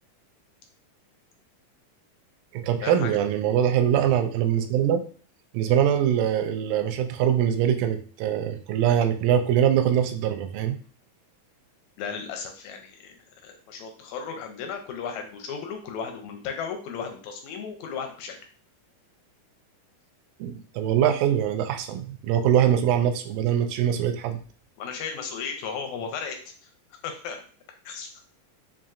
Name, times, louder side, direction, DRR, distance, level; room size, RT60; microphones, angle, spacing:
voice 1, 2.5-5.1 5.5-10.8 20.4-24.4, right 9 dB, 80° right, 6 dB, 2.0 m, -23 dB
voice 2, 12.0-13.1 13.4-18.4 24.8-26.4 27.0-27.4 27.9-28.1, left 6 dB, 80° left, 4 dB, 1.7 m, -35 dB
5.8 x 2.5 x 2.4 m, 0.41 s
omnidirectional pair, 3.7 m